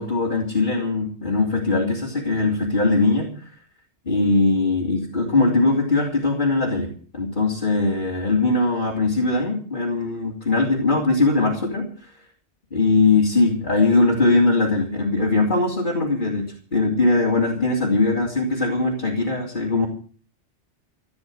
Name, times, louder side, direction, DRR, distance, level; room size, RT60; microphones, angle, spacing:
voice 1, 0.0-3.4 4.1-12.1 12.7-19.9, left 3 dB, 45° left, -2 dB, 3.4 m, -21 dB
15.5 x 10.5 x 7.9 m, 0.44 s
omnidirectional pair, 1.2 m